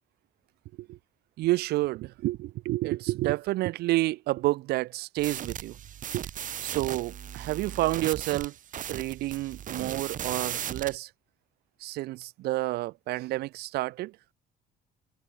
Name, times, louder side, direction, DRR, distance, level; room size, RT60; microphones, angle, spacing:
voice 1, 1.4-5.8 6.1-6.3 6.6-8.5 8.9-11.1 11.8-14.1, right 18 dB, 70° right, 0.5 m, -29 dB
sound 1, 5.2-11.0, right 10 dB, 50° right, 2.1 m, -37 dB
cardioid pair, 110°, 17 cm